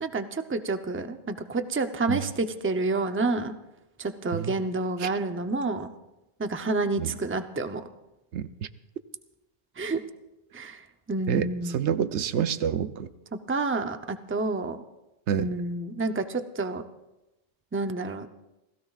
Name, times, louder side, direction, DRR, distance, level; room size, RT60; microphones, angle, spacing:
voice 1, 0.0-3.5 4.0-5.9 6.4-7.8 9.8-10.0 10.5-11.8 13.5-14.8 15.3-16.8 17.7-18.3, right 3 dB, 15° right, 7 dB, 0.5 m, -29 dB
voice 2, 11.3-13.1 15.3-15.5, right 8 dB, 90° right, 12 dB, 1.0 m, -28 dB
28.0 x 17.0 x 2.4 m, 0.96 s
omnidirectional pair, 1.1 m